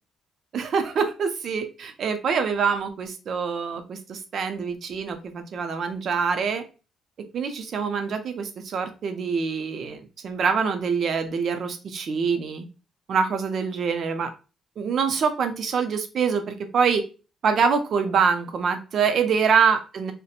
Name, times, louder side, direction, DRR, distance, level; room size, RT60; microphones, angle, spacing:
voice 1, 0.5-6.6 7.3-12.7 13.1-14.3 14.8-17.0 17.4-20.1, right 6 dB, 60° right, 7 dB, 0.5 m, -25 dB
2.8 x 2.1 x 2.4 m, 0.32 s
cardioid pair, 90°, 0 cm